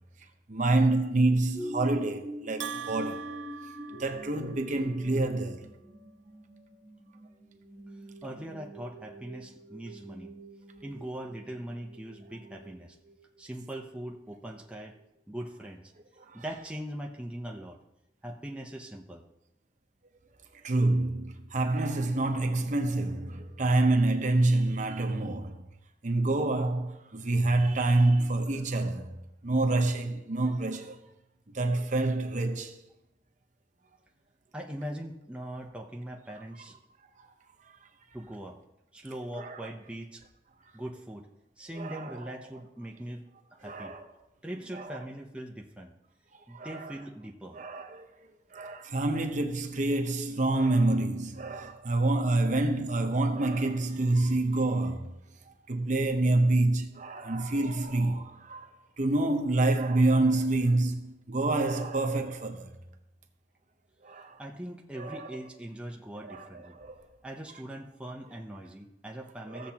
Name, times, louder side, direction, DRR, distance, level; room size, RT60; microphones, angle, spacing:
voice 1, 0.5-3.3 3.9-5.7 16.3-16.4 20.5-25.6 26.0-29.2 29.4-31.1 31.5-32.8 37.2-37.3 39.4-39.6 41.8-42.2 43.6-44.0 44.7-45.0 46.5-46.9 47.5-55.1 55.5-58.7 59.0-62.7 64.0-64.4 64.9-65.4 66.2-67.1 69.5-69.7, right 2 dB, 45° right, 0.9 m, -27 dB
sound 1, 1.5-15.1 15.6-15.7, equal, 25° left, 2.4 m, -45 dB
Bell, 2.6-4.7, right 8 dB, 80° right, 0.4 m, -41 dB
voice 2, 8.2-10.3 10.8-13.0 13.4-14.9 15.3-15.9 16.3-17.8 18.2-19.2 34.5-36.8 38.1-38.6 38.9-40.2 40.7-41.3 41.6-43.2 43.6-44.0 44.4-45.9 46.5-47.6 64.4-66.8 67.2-69.7, right 1 dB, 5° right, 0.6 m, -41 dB
15.5 x 7.2 x 2.9 m
head